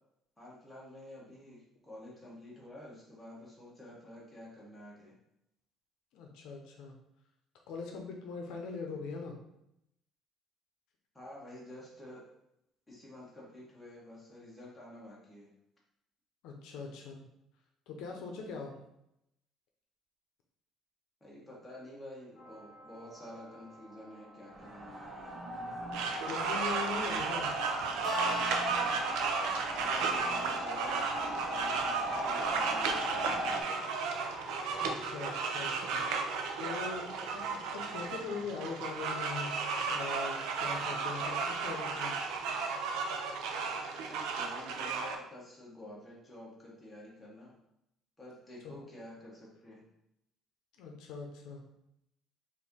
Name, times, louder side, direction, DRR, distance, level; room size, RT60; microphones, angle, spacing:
voice 1, 0.4-5.1 11.1-12.2 12.9-15.5 21.2-25.3 29.7-33.8 44.1-47.6 48.2-49.8, left 1 dB, 5° left, -6 dB, 1.0 m, -50 dB
voice 2, 6.1-7.0 7.7-9.4 16.4-17.1 17.9-18.8 26.3-27.5 33.7-33.8 34.7-36.0 36.6-39.5 39.9-42.2 48.6-48.7 50.8-51.6, left 4 dB, 70° left, 2 dB, 0.7 m, -41 dB
sound 1, 22.4-32.7, equal, 30° left, 1.0 m, -44 dB
sound 2, 24.5-33.6, right 1 dB, 20° right, 0.6 m, -39 dB
sound 3, 25.9-45.1, right 4 dB, 80° right, 0.5 m, -34 dB
4.3 x 2.7 x 3.5 m, 0.81 s
cardioid pair, 180°, 0 cm